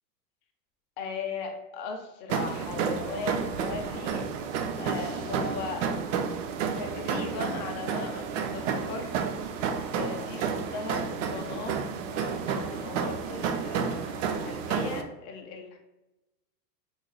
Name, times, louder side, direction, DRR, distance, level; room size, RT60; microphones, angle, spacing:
voice 1, 1.0-4.3 4.8-5.9 6.7-9.1 9.9-11.8 12.1-15.8, left 4 dB, 30° left, 3 dB, 0.4 m, -38 dB
sound 1, 2.3-15.0, right 6 dB, 50° right, 0.5 m, -31 dB
3.1 x 2.2 x 3.8 m, 0.99 s
hypercardioid pair, 130°, 49 cm